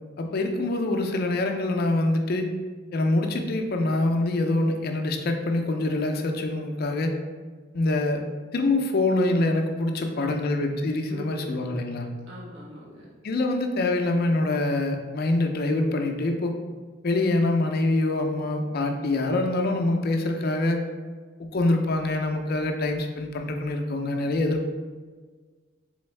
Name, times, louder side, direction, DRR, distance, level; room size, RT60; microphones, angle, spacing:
voice 1, 0.2-2.5 2.9-7.2 7.7-8.2 8.5-12.1 13.2-16.5 17.0-20.8 21.4-24.7, left 2 dB, 50° left, 4 dB, 0.4 m, -25 dB
voice 2, 9.9-10.6 11.1-11.9 12.3-13.1, equal, 65° right, -6 dB, 0.9 m, -43 dB
3.8 x 3.4 x 3.2 m, 1.5 s
head